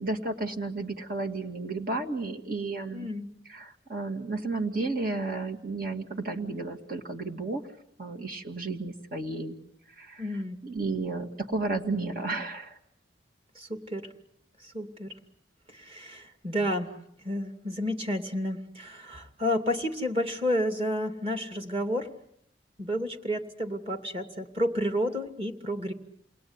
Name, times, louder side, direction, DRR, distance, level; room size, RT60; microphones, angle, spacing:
voice 1, 0.0-3.1 3.5-7.6 8.0-9.6 10.0-10.3 10.6-12.8, right 3 dB, 55° right, 4 dB, 2.3 m, -32 dB
voice 2, 2.9-3.3 10.2-10.6 13.5-14.1 14.7-15.1 15.7-16.9 17.2-22.1 22.8-25.9, equal, 35° right, 6 dB, 2.7 m, -30 dB
29.0 x 20.5 x 9.8 m, 0.74 s
head